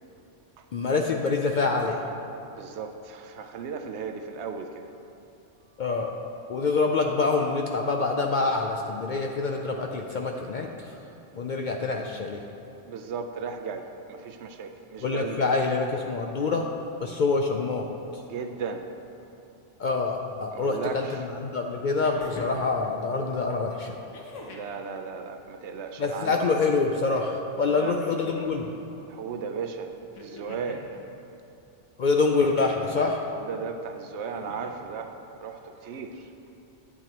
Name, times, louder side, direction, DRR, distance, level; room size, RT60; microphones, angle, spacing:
voice 1, 0.7-2.0 5.8-6.1 6.5-11.0 11.4-12.4 15.0-16.7 17.0-17.9 18.1-18.2 19.8-24.0 26.0-28.7 32.0-33.2, left 4 dB, 60° left, 2 dB, 0.5 m, -26 dB
voice 2, 2.5-4.9 12.8-15.5 18.2-18.9 20.5-21.3 24.5-26.4 27.7-28.0 29.1-31.0 33.3-35.1 35.4-36.3, right 5 dB, 70° right, 6 dB, 0.9 m, -36 dB
sound 1, 22.0-22.7 24.1-24.8 26.1-26.8 28.0-28.8 30.2-30.9 32.4-32.9 34.2-34.8 36.1-36.2, left 2 dB, 85° left, 1.3 m, -43 dB
10.5 x 8.5 x 3.0 m, 2.8 s
omnidirectional pair, 1.2 m